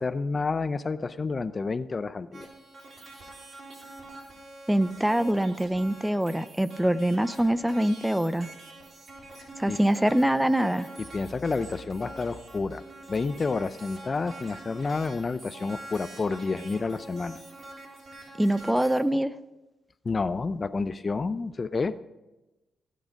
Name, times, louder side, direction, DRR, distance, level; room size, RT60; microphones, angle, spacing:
voice 1, 0.0-2.5 9.7-9.8 11.1-12.8 13.1-17.4 20.0-22.0, left 4 dB, 40° left, 14 dB, 0.5 m, -29 dB
sound 1, 2.3-19.0, right 2 dB, 55° right, 3.6 m, -45 dB
voice 2, 4.7-8.5 9.6-10.9 18.4-19.3, right 1 dB, 5° right, 14 dB, 0.6 m, -24 dB
17.0 x 8.7 x 5.2 m, 1.0 s
cardioid pair, 75°, 0 cm